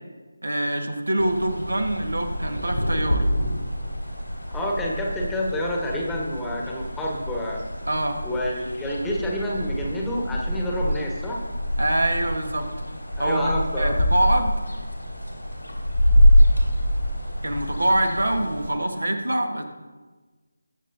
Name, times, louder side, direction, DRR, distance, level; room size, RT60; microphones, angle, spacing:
voice 1, 0.4-3.3 7.8-8.2 11.8-12.7 13.2-14.5 17.4-19.6, right 1 dB, 75° right, 5 dB, 1.5 m, -24 dB
sound 1, 1.2-18.7, equal, 85° left, 3.7 m, -25 dB
voice 2, 4.5-7.6 8.2-11.4 13.2-13.9, left 1 dB, 5° left, -3 dB, 1.3 m, -28 dB
20.0 x 7.1 x 2.7 m, 1.3 s
figure-of-eight pair, 160°, 0 cm